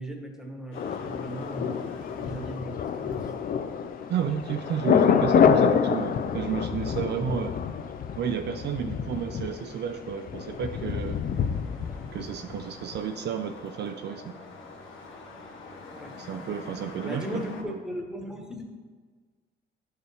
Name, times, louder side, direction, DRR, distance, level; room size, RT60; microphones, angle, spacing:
voice 1, 0.0-1.9 2.2-3.3 15.9-16.5 17.0-18.6, equal, 5° right, 2 dB, 1.2 m, -38 dB
sound 1, 0.7-17.6, left 3 dB, 80° left, 1.2 m, -47 dB
Thunder, 0.8-12.6 12.9-13.0, left 7 dB, 45° left, 0.4 m, -27 dB
voice 2, 4.1-7.6 8.2-11.2 12.1-14.3 16.2-17.8, right 8 dB, 60° right, 7 dB, 0.4 m, -31 dB
10.5 x 4.5 x 3.4 m, 1.5 s
cardioid pair, 90°, 20 cm